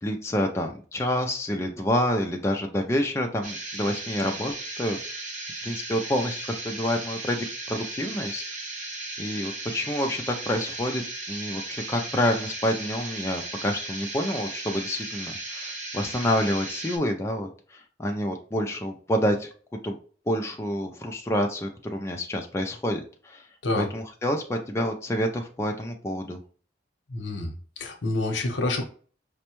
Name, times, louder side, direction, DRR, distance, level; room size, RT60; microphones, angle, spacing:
voice 1, 0.0-5.0 5.6-8.4 9.2-11.0 11.3-19.5 19.8-19.9 20.3-23.5 23.8-26.4, equal, 15° left, 2 dB, 0.3 m, -28 dB
sound 1, 3.4-17.0, right 2 dB, 40° right, 0.8 m, -36 dB
voice 2, 27.1-28.9, left 2 dB, 70° left, 4 dB, 0.8 m, -28 dB
5.1 x 2.2 x 2.9 m, 0.42 s
head